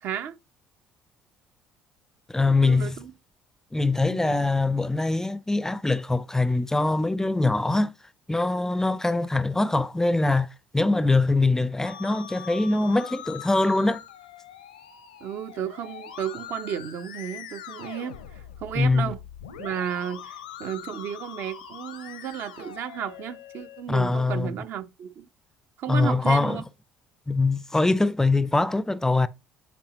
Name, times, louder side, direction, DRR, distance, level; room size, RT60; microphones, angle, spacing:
voice 1, 0.0-0.4 2.5-3.1 4.0-4.4 15.2-19.2 19.6-25.3 25.8-26.6, right 9 dB, 55° right, 0.7 m, -33 dB
voice 2, 2.3-3.0 3.7-7.9 8.3-14.0 18.8-19.1 23.9-24.5 25.9-26.6 27.3-29.3, left 3 dB, 10° left, 0.4 m, -23 dB
Musical instrument, 11.9-23.8, left 9 dB, 80° left, 0.7 m, -42 dB
8.6 x 4.2 x 2.9 m
figure-of-eight pair, 55°, 4 cm